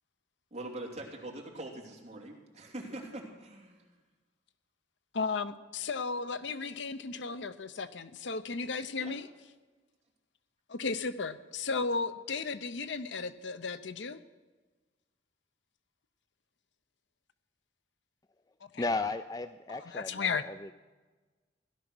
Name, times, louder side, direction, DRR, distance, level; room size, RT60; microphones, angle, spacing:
voice 1, 0.5-3.9 9.0-9.1, right 1 dB, 35° right, -1 dB, 2.8 m, -43 dB
voice 2, 5.1-9.3 10.7-14.2 18.7-18.8 19.7-20.4, left 4 dB, 70° left, 12 dB, 0.7 m, -35 dB
voice 3, 18.8-20.7, left 3 dB, 20° left, 11 dB, 0.4 m, -35 dB
16.5 x 11.5 x 6.2 m, 1.3 s
head